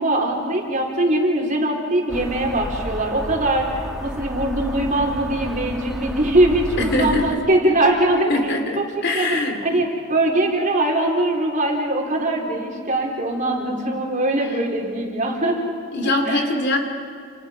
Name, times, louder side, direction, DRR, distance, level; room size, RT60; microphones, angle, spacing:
voice 1, 0.0-3.7 4.0-8.8 9.1-15.6 16.0-16.5, right 1 dB, 35° right, 0 dB, 4.1 m, -21 dB
sound 1, 2.1-7.4, equal, ahead, 1.7 m, -31 dB
voice 2, 6.8-7.4 8.3-9.8 15.9-16.8, left 2 dB, 50° left, 5 dB, 2.7 m, -23 dB
29.5 x 29.0 x 5.2 m, 2.4 s
head